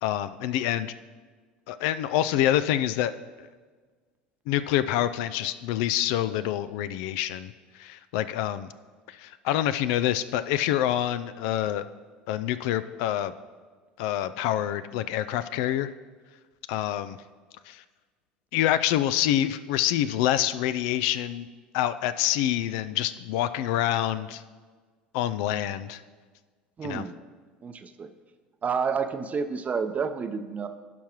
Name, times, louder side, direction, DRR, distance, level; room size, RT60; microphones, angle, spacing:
voice 1, 0.0-0.9 1.7-3.1 4.5-7.5 7.8-8.7 9.1-11.9 12.3-13.3 14.0-15.9 16.7-17.2 17.7-17.8 18.5-21.5 21.7-24.4 25.1-26.0 26.8-27.0, left 12 dB, 60° left, 12 dB, 0.4 m, -26 dB
voice 2, 26.8-27.2 27.6-28.1 28.6-30.7, right 5 dB, 30° right, 9 dB, 0.7 m, -29 dB
16.0 x 5.8 x 3.0 m, 1.5 s
figure-of-eight pair, 70°, 5 cm